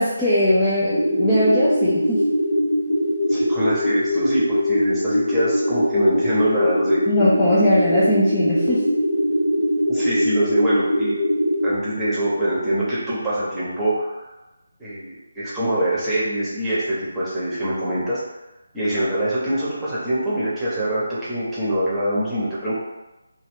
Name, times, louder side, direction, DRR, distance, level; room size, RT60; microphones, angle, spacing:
voice 1, 0.0-2.3 7.1-8.9, left 1 dB, 10° left, -10 dB, 0.4 m, -20 dB
sound 1, 0.9-11.7, equal, 85° left, 0.6 m, -21 dB
voice 2, 3.3-7.0 9.9-11.2 11.6-14.3 14.8-18.2 18.7-22.7, right 1 dB, 5° right, -10 dB, 0.9 m, -24 dB
2.7 x 2.2 x 3.6 m, 1.0 s
figure-of-eight pair, 155°, 0 cm